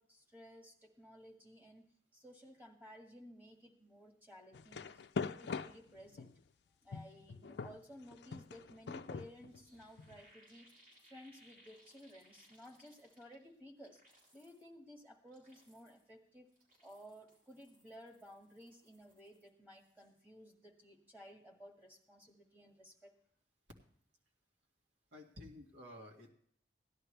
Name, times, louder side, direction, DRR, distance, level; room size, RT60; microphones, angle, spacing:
voice 1, 0.0-1.8 2.1-6.3 6.8-14.0 14.3-16.5 16.8-23.2, equal, 10° right, 1 dB, 1.9 m, -56 dB
sound 1, 4.5-6.4 6.9-10.2, left 5 dB, 65° left, 0.4 m, -43 dB
sound 2, 9.2-9.3 9.5-13.5 13.8-14.7 15.1-16.1 16.5-19.5 19.8-20.1, equal, 50° right, 4.1 m, -67 dB
voice 2, 25.1-26.3, left 1 dB, 90° right, -1 dB, 2.1 m, -52 dB
16.0 x 11.0 x 3.3 m, 0.66 s
head